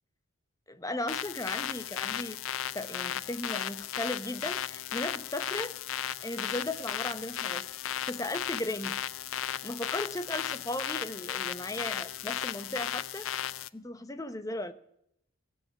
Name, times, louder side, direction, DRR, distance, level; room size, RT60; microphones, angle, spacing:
voice 1, 0.7-2.4 2.7-5.8 6.2-7.7 8.0-8.9 9.6-13.3 13.7-14.7, left 1 dB, 15° left, 11 dB, 0.9 m, -36 dB
sound 1, 1.1-13.7, left 10 dB, 70° left, 0.5 m, -35 dB
16.5 x 7.7 x 9.6 m, 0.74 s
head